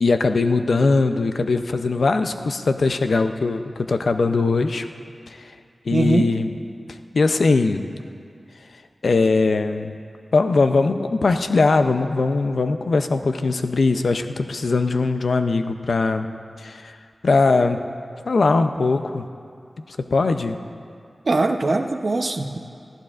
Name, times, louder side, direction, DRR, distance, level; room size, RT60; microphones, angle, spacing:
voice 1, 0.0-4.9 5.3-5.5 5.9-6.5 7.1-7.9 9.0-9.9 10.3-16.3 16.6-17.0 17.2-17.8 18.3-19.3 19.9-20.6, left 3 dB, 80° left, 8 dB, 0.5 m, -20 dB
voice 2, 5.9-6.3 21.3-22.6, right 2 dB, 55° right, 5 dB, 0.7 m, -21 dB
19.5 x 14.0 x 2.5 m, 2.3 s
wide cardioid pair, 85°, 0 cm